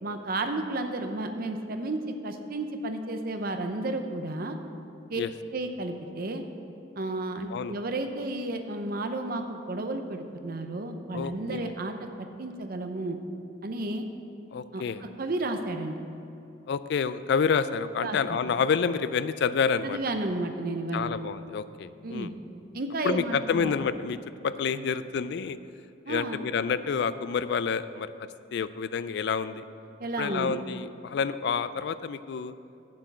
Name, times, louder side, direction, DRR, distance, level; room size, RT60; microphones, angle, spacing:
voice 1, 0.0-4.6 5.1-5.2 5.5-6.4 7.0-11.9 12.4-13.2 13.6-14.0 14.7-14.8 15.2-16.0 18.0-18.4 19.8-21.1 22.0-22.3 22.7-23.7 26.1-26.4 30.0-30.6, right 2 dB, 50° right, 6 dB, 0.7 m, -32 dB
voice 2, 11.1-11.7 14.5-15.0 16.7-20.0 20.9-22.3 23.0-24.2 24.4-25.6 26.1-29.6 30.2-32.5, left 6 dB, 60° left, 14 dB, 0.3 m, -28 dB
7.5 x 6.8 x 7.1 m, 2.8 s
head